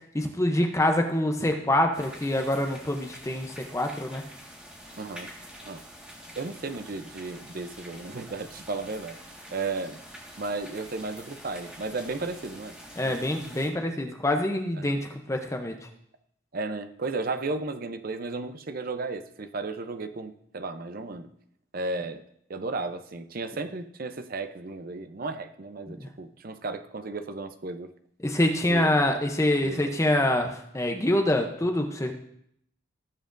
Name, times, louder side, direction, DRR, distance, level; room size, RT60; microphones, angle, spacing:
voice 1, 0.1-4.2 13.0-15.7 25.9-26.1 28.2-32.1, left 1 dB, 15° left, 4 dB, 0.6 m, -25 dB
sound 1, 1.9-13.7, equal, 5° right, 1.6 m, -46 dB
voice 2, 5.0-5.3 5.6-5.8 6.4-9.2 9.5-10.0 10.4-12.8 13.0-13.2 14.8-15.0 16.5-21.3 21.7-22.2 22.5-27.9 28.7-29.0 29.6-29.9, right 3 dB, 45° right, 8 dB, 0.6 m, -34 dB
17.5 x 7.6 x 2.6 m, 0.73 s
head